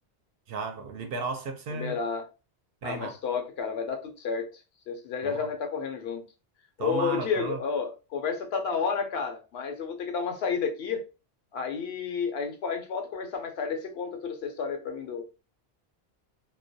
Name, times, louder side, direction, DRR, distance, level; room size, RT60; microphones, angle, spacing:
voice 1, 0.5-2.0 2.8-3.2 5.2-5.5 6.8-7.6, right 4 dB, 70° right, 0.7 m, -34 dB
voice 2, 1.7-2.2 2.8-4.5 4.9-6.2 6.8-11.0 11.5-15.2, left 5 dB, 75° left, 0.8 m, -31 dB
2.2 x 2.1 x 2.6 m
omnidirectional pair, 1.1 m